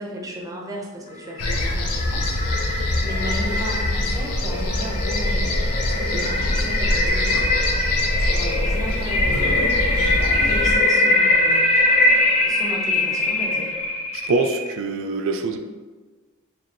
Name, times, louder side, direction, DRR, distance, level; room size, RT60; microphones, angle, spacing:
voice 1, 0.0-2.3 3.0-7.4 8.2-11.7 12.4-13.7, equal, 15° right, -1 dB, 0.6 m, -35 dB
sound 1, 1.3-14.7, left 2 dB, 30° left, 0.5 m, -22 dB
sound 2, 1.4-10.8, left 1 dB, 70° left, 0.6 m, -24 dB
voice 2, 14.1-15.6, right 3 dB, 60° right, 6 dB, 0.3 m, -24 dB
3.1 x 2.8 x 4.1 m, 1.3 s
head